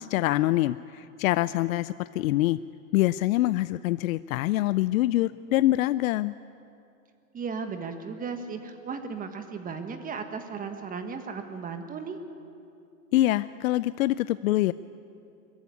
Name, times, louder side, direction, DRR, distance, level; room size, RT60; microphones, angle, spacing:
voice 1, 0.0-2.6 2.9-6.3 13.1-14.7, left 16 dB, 70° left, 16 dB, 0.5 m, -25 dB
voice 2, 7.3-12.2, right 5 dB, 20° right, 7 dB, 1.4 m, -35 dB
21.5 x 14.5 x 9.7 m, 2.6 s
supercardioid pair, 135°, 42 cm